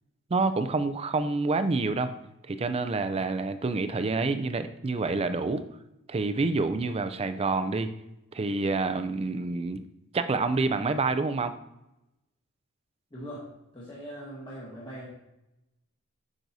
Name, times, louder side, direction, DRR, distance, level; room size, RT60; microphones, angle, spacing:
voice 1, 0.3-2.1 2.5-5.6 6.1-7.9 8.3-9.8 10.1-11.5, right 3 dB, 25° right, 10 dB, 0.4 m, -27 dB
voice 2, 13.1-15.1, equal, 20° left, -7 dB, 1.4 m, -41 dB
8.7 x 6.2 x 2.7 m, 0.91 s
head